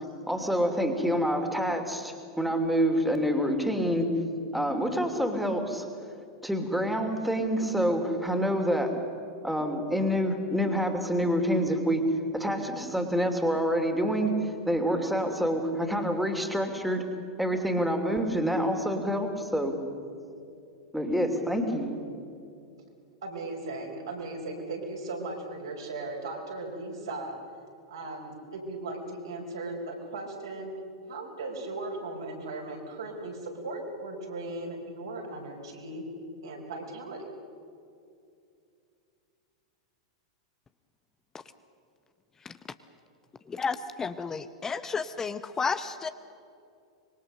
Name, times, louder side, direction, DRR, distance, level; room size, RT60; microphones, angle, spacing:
voice 1, 0.3-4.1 4.5-5.8 6.4-8.9 9.4-12.0 12.3-14.3 14.7-17.0 17.4-19.7 20.9-22.0, equal, ahead, 4 dB, 2.9 m, -27 dB
voice 2, 23.2-27.3 27.9-30.7 31.1-36.0 36.4-37.3, right 2 dB, 65° right, 0 dB, 5.3 m, -37 dB
voice 3, 43.5-46.1, left 5 dB, 20° left, 11 dB, 0.8 m, -32 dB
25.5 x 22.5 x 6.7 m, 2.5 s
figure-of-eight pair, 95°, 3 cm